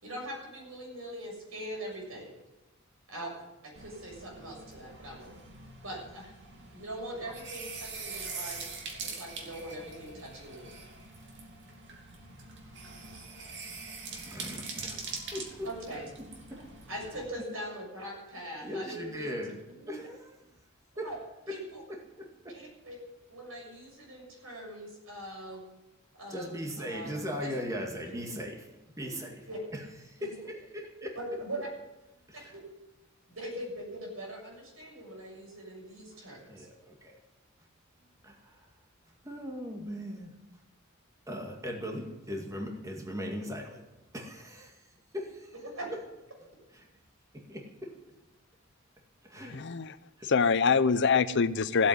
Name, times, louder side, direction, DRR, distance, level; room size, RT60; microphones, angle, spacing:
voice 1, 0.0-2.3 3.1-5.3 5.8-6.3 6.7-10.7 15.6-16.1 16.9-19.6 19.8-20.0 21.0-21.2 21.5-21.8 22.5-23.0 23.3-25.6 26.1-27.5 28.0-28.2 29.5-29.7 31.2-31.7 32.5-32.6 33.3-36.7 45.7-45.9, right 1 dB, 80° right, -1 dB, 6.9 m, -41 dB
sound 1, 3.8-17.3, right 4 dB, 60° right, 2.5 m, -43 dB
voice 2, 14.1-15.7 16.5-16.6 18.6-19.5 19.9-20.4 21.0-21.1 21.5-21.6 21.9-22.5 26.3-29.5 29.7-31.1 32.3-32.5 36.1-36.2 36.5-37.2 38.2-38.7 39.2-40.3 41.3-43.8 44.1-44.8 45.1-45.5 46.7-46.9 47.3-47.9 49.2-49.6 50.2-50.3, equal, 15° right, 1 dB, 2.2 m, -39 dB
voice 3, 49.4-50.0 50.2-51.9, left 5 dB, 60° left, 15 dB, 0.6 m, -25 dB
15.5 x 8.4 x 9.5 m, 0.98 s
head